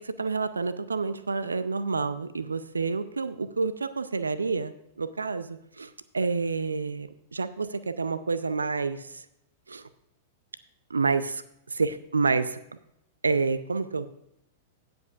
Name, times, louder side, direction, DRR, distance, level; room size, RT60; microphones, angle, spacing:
voice 1, 0.0-9.2 9.7-9.9 10.9-12.6 13.2-14.1, right 4 dB, 80° right, 14 dB, 0.5 m, -29 dB
17.0 x 7.8 x 2.5 m, 0.77 s
figure-of-eight pair, 100°, 0 cm